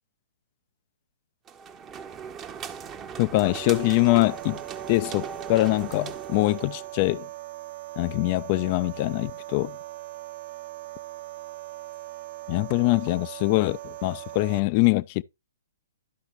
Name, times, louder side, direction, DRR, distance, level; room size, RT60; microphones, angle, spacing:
sound 1, 1.5-6.9, right 6 dB, 20° right, 0.8 m, -39 dB
voice 1, 3.2-4.6 4.9-7.3 8.0-9.8 12.5-15.2, left 21 dB, 35° left, 0.4 m, -23 dB
sound 2, 3.4-14.6, right 16 dB, 45° right, 0.4 m, -40 dB
12.0 x 5.8 x 2.9 m
hypercardioid pair, 130°, 0 cm